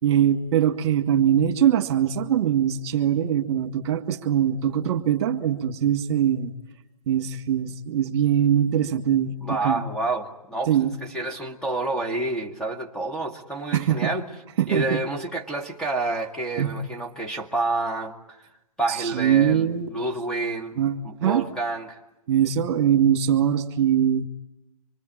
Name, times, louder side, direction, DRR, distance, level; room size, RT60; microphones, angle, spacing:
voice 1, 0.0-6.5 7.1-9.8 10.7-10.9 13.7-14.1 14.6-15.0 16.6-16.7 19.0-19.9 20.8-21.5 22.3-24.3, right 9 dB, 45° right, 2.0 m, -22 dB
voice 2, 9.4-14.3 14.7-18.4 18.8-20.8 21.0-22.0, right 2 dB, 5° left, 1.8 m, -29 dB
25.5 x 24.0 x 8.8 m
hypercardioid pair, 130°, 19 cm